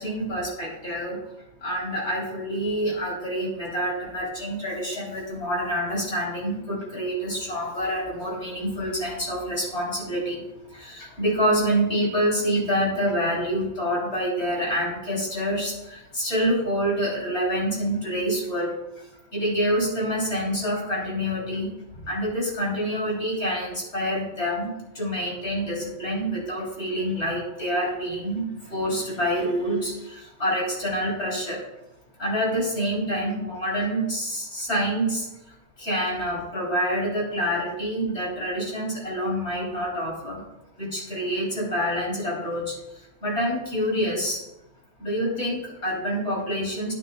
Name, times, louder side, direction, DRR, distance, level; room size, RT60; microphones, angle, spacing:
voice 1, 0.0-31.6 32.2-40.4 40.8-44.4 45.0-46.9, equal, 55° left, -5 dB, 4.0 m, -27 dB
11.0 x 9.5 x 2.4 m, 0.93 s
omnidirectional pair, 1.4 m